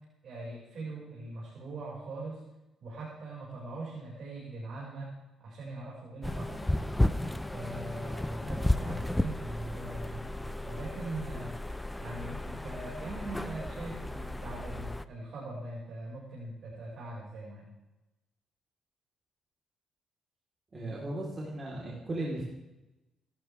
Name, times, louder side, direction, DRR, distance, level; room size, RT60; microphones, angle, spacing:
voice 1, 0.2-2.4 2.8-5.1 5.4-6.9 7.5-11.6 12.0-17.7, right 2 dB, 60° right, -5 dB, 6.1 m, -41 dB
sound 1, 6.2-15.0, left 1 dB, 10° left, 0.7 m, -33 dB
voice 2, 20.7-22.5, right 1 dB, 30° right, -4 dB, 4.3 m, -36 dB
26.0 x 13.0 x 3.6 m, 1.0 s
cardioid pair, 90°, 0 cm